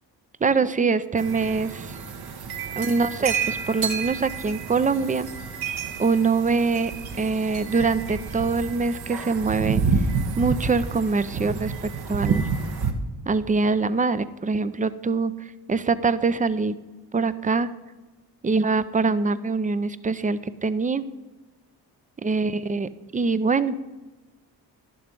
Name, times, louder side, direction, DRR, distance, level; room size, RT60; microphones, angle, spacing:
voice 1, 0.4-1.9 2.8-5.3 6.0-6.9 7.2-9.8 10.4-12.4 13.3-16.7 17.1-17.7 18.4-21.0 22.2-23.8, right 4 dB, 20° right, 15 dB, 0.5 m, -24 dB
sound 1, 1.2-12.9, right 5 dB, 60° right, 1.2 m, -29 dB
11.0 x 6.9 x 5.3 m, 1.2 s
supercardioid pair, 50°, 44 cm